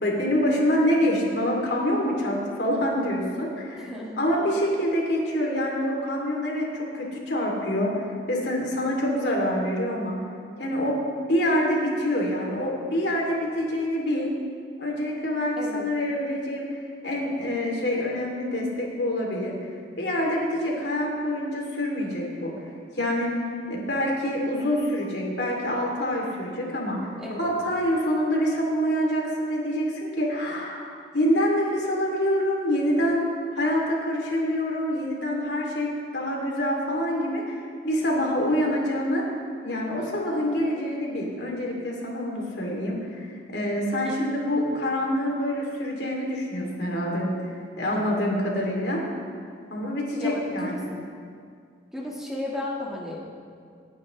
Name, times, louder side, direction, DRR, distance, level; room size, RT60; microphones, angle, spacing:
voice 1, 0.0-10.1 10.6-11.0 11.3-14.3 14.8-16.7 17.0-19.5 20.0-22.5 22.9-23.3 23.7-27.1 27.4-30.9 31.1-33.3 33.5-37.4 37.8-39.2 39.6-47.3 47.8-49.0 49.7-50.9, equal, 65° left, -2 dB, 2.8 m, -26 dB
voice 2, 1.0-1.4 3.8-4.2 15.6-15.9 27.2-27.5 50.2-50.8 51.9-53.2, left 1 dB, 5° right, -4 dB, 1.7 m, -34 dB
28.5 x 9.5 x 3.2 m, 2.2 s
head